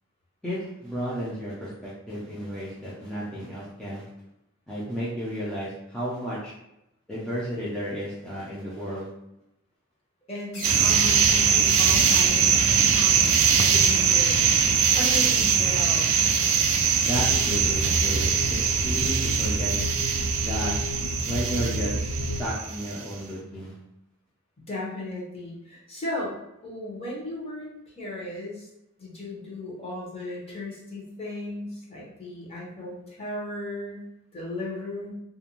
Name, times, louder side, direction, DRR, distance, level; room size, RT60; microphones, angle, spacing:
voice 1, 0.4-4.0 4.7-6.5 7.1-9.1 17.0-19.7 20.4-21.0 21.3-23.8, equal, 5° left, -9 dB, 0.5 m, -33 dB
voice 2, 10.3-14.4 15.0-16.1 24.7-26.4 26.6-28.7 29.0-35.1, left 1 dB, 30° left, -5 dB, 0.8 m, -36 dB
sound 1, 10.5-13.1, left 1 dB, 90° left, 1.2 m, -42 dB
sound 2, 10.6-23.0, right 6 dB, 70° right, 0.3 m, -22 dB
sound 3, 17.1-22.5, equal, 75° left, 0.4 m, -30 dB
2.5 x 2.2 x 2.9 m, 0.87 s
head